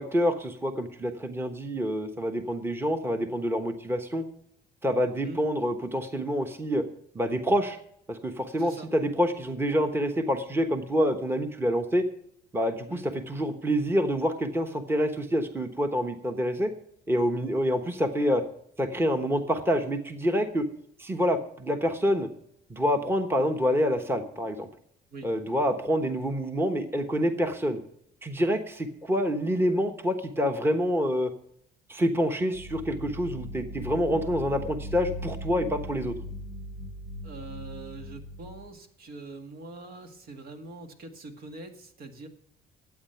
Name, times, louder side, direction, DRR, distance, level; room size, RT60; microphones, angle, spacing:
voice 1, 0.0-4.2 4.8-6.8 7.1-7.8 8.1-12.0 12.5-16.7 17.1-18.4 18.8-20.6 21.0-22.3 22.7-24.7 25.2-27.8 28.2-31.3 31.9-36.1, equal, 15° right, 7 dB, 1.2 m, -27 dB
voice 2, 8.6-8.9 12.9-13.1 25.1-25.3 37.2-42.3, right 3 dB, 65° right, 6 dB, 2.0 m, -43 dB
sound 1, 32.5-38.7, equal, 90° right, 2.8 m, -39 dB
12.5 x 8.7 x 5.8 m, 0.71 s
cardioid pair, 110°, 17 cm